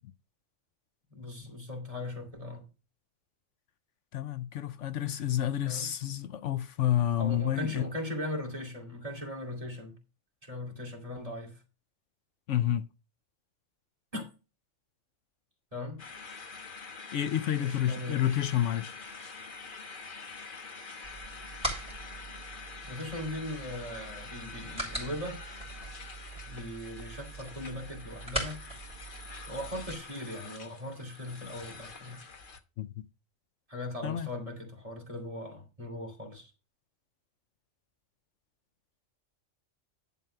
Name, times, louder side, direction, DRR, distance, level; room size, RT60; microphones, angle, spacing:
voice 1, 1.1-2.7 5.6-5.9 7.2-10.0 10.4-11.6 14.1-14.2 15.7-16.0 17.5-18.4 22.8-25.4 26.5-28.6 29.5-32.2 33.7-36.5, left 1 dB, 25° right, 2.6 m, -39 dB
voice 2, 4.1-7.8 12.5-12.9 17.1-18.9 32.8-32.9 34.0-34.3, left 11 dB, 75° left, 1.0 m, -29 dB
sound 1, 16.0-32.6, left 4 dB, 45° left, 1.2 m, -46 dB
sound 2, 21.0-29.9, right 2 dB, 5° right, 3.5 m, -41 dB
11.0 x 4.0 x 6.6 m
omnidirectional pair, 1.3 m